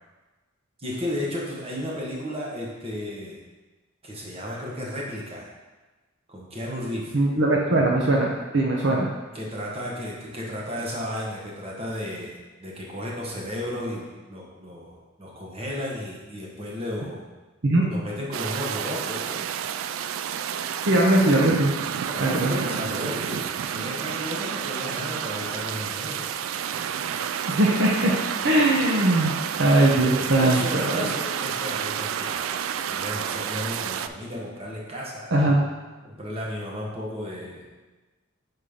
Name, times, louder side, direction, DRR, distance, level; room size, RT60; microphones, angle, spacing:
voice 1, 0.8-3.4 4.0-5.5 6.3-7.2 9.3-17.2 17.9-19.5 22.0-26.3 30.4-35.3 36.0-37.7, left 1 dB, 30° right, -4 dB, 1.3 m, -34 dB
voice 2, 7.1-9.1 17.6-17.9 20.9-21.7 22.2-22.5 27.5-28.1 28.4-31.1 35.3-35.6, right 1 dB, 65° right, -2 dB, 0.8 m, -20 dB
sound 1, 18.3-34.1, right 8 dB, 85° right, 0.3 m, -30 dB
5.6 x 4.4 x 5.0 m, 1.2 s
head